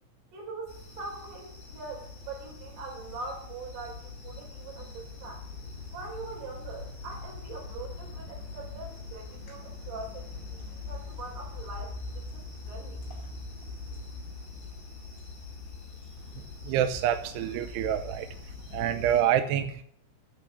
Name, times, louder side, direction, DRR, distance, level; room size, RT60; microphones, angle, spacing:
voice 1, 0.3-5.4 5.9-12.4 12.7-13.0, right 3 dB, 60° right, 0 dB, 6.4 m, -42 dB
sound 1, 0.7-19.2, left 3 dB, 50° left, 5.9 m, -42 dB
voice 2, 16.7-18.3 18.7-19.8, right 10 dB, 80° right, 9 dB, 2.5 m, -27 dB
12.0 x 7.2 x 7.1 m, 0.63 s
omnidirectional pair, 5.4 m